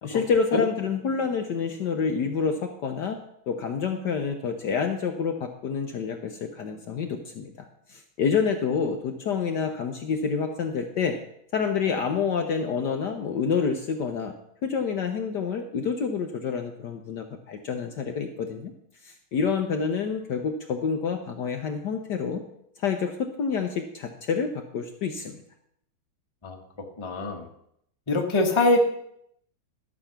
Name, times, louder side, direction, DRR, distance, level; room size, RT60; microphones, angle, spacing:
voice 1, 0.0-3.2 3.5-11.2 11.5-14.3 14.6-18.7 19.0-22.4 22.8-25.4, left 6 dB, 65° left, 4 dB, 1.3 m, -28 dB
voice 2, 27.0-27.4 28.1-28.8, left 2 dB, 15° left, 2 dB, 1.1 m, -23 dB
12.5 x 6.6 x 5.8 m, 0.73 s
omnidirectional pair, 2.3 m